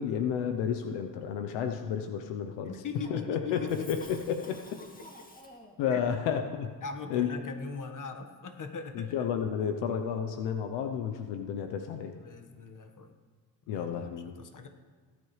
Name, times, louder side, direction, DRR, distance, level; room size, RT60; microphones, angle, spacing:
voice 1, 0.0-2.7 3.1-4.6 5.8-6.7 7.1-7.3 8.9-12.1 13.7-14.3, left 8 dB, 90° left, 6 dB, 0.8 m, -31 dB
voice 2, 2.6-4.0 5.8-6.0 6.8-9.3 12.2-13.1 13.7-13.9 14.4-14.7, left 4 dB, 45° left, 5 dB, 1.5 m, -40 dB
Cough, 2.9-5.9, left 1 dB, 20° left, 2.0 m, -50 dB
18.0 x 9.5 x 3.2 m, 1.5 s
supercardioid pair, 65°, 42 cm